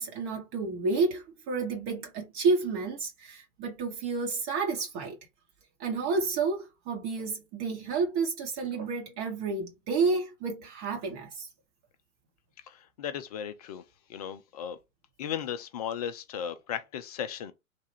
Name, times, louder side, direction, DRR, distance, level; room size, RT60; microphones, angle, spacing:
voice 1, 0.0-5.2 5.8-11.5, right 4 dB, 35° right, 1.1 m, -30 dB
voice 2, 12.6-13.8 14.1-14.8 15.2-17.5, left 9 dB, 30° left, 0.4 m, -36 dB
3.3 x 2.3 x 4.1 m
figure-of-eight pair, 105°, 41 cm